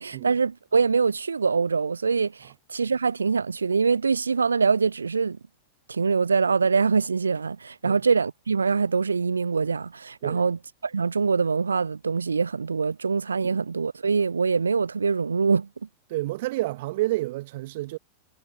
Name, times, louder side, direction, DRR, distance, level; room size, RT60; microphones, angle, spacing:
voice 1, 0.0-5.4 5.9-15.7, right 5 dB, 75° right, 0.3 m, -24 dB
voice 2, 16.1-18.0, right 18 dB, 50° right, 1.5 m, -29 dB
figure-of-eight pair, 90°, 0 cm